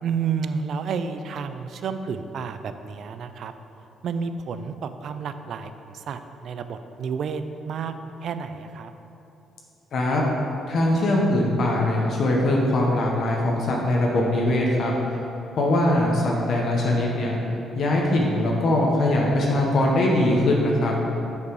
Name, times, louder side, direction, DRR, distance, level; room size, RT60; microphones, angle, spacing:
voice 1, 0.0-3.5 4.0-8.9, right 6 dB, 65° right, 10 dB, 0.4 m, -31 dB
voice 2, 9.9-10.2 10.7-14.9 15.5-17.4 17.7-21.0, left 1 dB, 65° left, -2 dB, 1.0 m, -21 dB
6.8 x 5.4 x 4.8 m, 2.9 s
cardioid pair, 90°, 0 cm